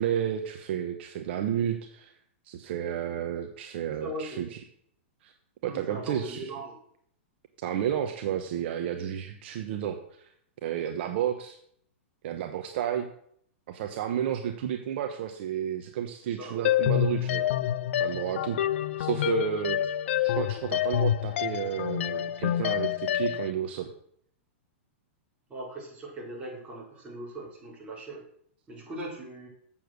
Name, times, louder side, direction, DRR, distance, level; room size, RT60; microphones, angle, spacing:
voice 1, 0.0-2.1 2.4-4.5 5.2-5.3 5.6-6.5 7.6-10.3 10.6-11.6 12.2-13.1 13.7-17.5 18.0-18.6 19.0-19.8 20.2-23.9, right 10 dB, 55° right, 6 dB, 1.0 m, -31 dB
voice 2, 4.0-4.4 5.6-6.8 16.2-16.7 25.5-28.2 28.7-29.5, right 1 dB, 15° right, -4 dB, 4.2 m, -40 dB
sound 1, 16.6-23.5, left 11 dB, 70° left, 0.5 m, -27 dB
7.7 x 7.1 x 6.5 m, 0.66 s
hypercardioid pair, 140°, 7 cm